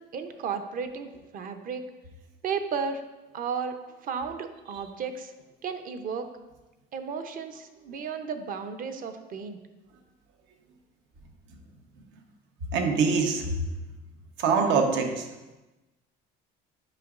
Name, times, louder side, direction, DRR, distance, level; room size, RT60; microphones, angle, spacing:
voice 1, 0.1-1.8 2.4-3.0 3.3-3.8 4.0-5.3 5.6-6.3 6.9-9.6, right 6 dB, 50° right, 7 dB, 0.7 m, -33 dB
voice 2, 12.7-13.6 14.4-15.3, right 5 dB, 80° right, 4 dB, 1.0 m, -24 dB
9.1 x 5.2 x 2.5 m, 1.1 s
cardioid pair, 115°, 19 cm